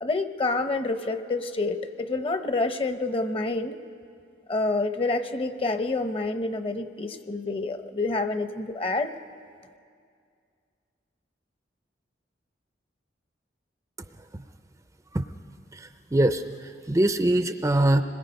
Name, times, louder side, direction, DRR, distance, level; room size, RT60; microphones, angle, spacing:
voice 1, 0.0-3.7 4.5-9.1, left 3 dB, 30° left, 9 dB, 0.8 m, -28 dB
voice 2, 15.7-18.0, right 1 dB, 15° right, 9 dB, 0.5 m, -24 dB
26.0 x 21.5 x 5.3 m, 2.2 s
head